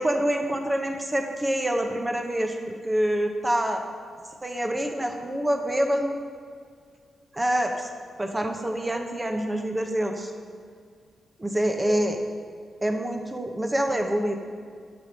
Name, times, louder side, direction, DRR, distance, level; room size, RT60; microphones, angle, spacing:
voice 1, 0.0-3.8 4.4-6.2 7.3-7.9 8.2-10.3 11.4-12.2 12.8-14.4, right 1 dB, 15° right, 4 dB, 0.7 m, -26 dB
6.7 x 5.6 x 6.1 m, 2.1 s
wide cardioid pair, 120°, 0 cm